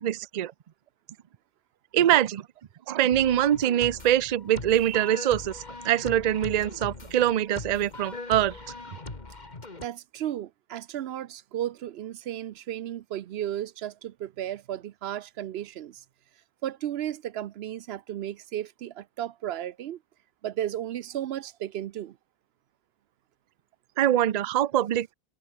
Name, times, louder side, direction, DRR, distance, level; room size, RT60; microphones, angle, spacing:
voice 1, 0.0-0.5 1.9-2.5 2.9-8.6 24.0-25.1, right 11 dB, 50° right, 0.6 m, -24 dB
sound 1, 3.1-9.8, left 3 dB, 45° left, 2.4 m, -40 dB
voice 2, 9.8-16.0 16.6-20.0 20.4-22.2, right 11 dB, 85° right, 0.8 m, -34 dB
omnidirectional pair, 1.0 m